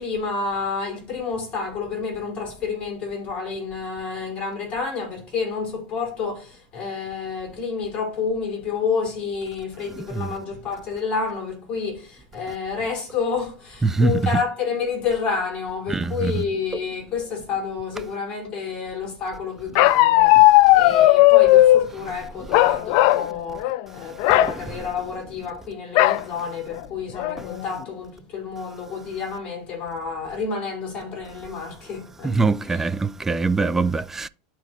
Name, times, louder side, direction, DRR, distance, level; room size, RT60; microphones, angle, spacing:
voice 1, 0.0-32.9, left 5 dB, 30° left, 4.3 m, -29 dB
voice 2, 13.8-14.2 15.9-16.3 32.2-34.3, right 3 dB, 10° right, 0.4 m, -22 dB
Bark, 19.8-21.9 22.5-23.3 23.6-23.8 24.2-24.5 26.0-26.2 26.8-26.9 27.2-27.6, left 16 dB, 60° left, 0.4 m, -15 dB
13.0 x 4.5 x 2.3 m
supercardioid pair, 130°, 4 cm